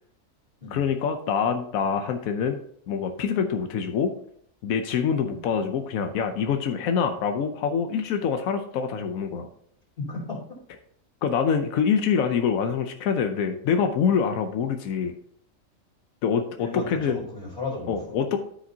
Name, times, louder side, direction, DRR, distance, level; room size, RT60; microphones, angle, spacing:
voice 1, 0.7-4.1 4.6-9.5 11.2-15.1 16.2-17.2 17.9-18.4, left 6 dB, 90° left, 6 dB, 1.1 m, -25 dB
voice 2, 10.0-10.4 16.6-18.2, left 2 dB, 40° left, -5 dB, 3.4 m, -34 dB
13.0 x 5.1 x 2.8 m, 0.64 s
omnidirectional pair, 1.4 m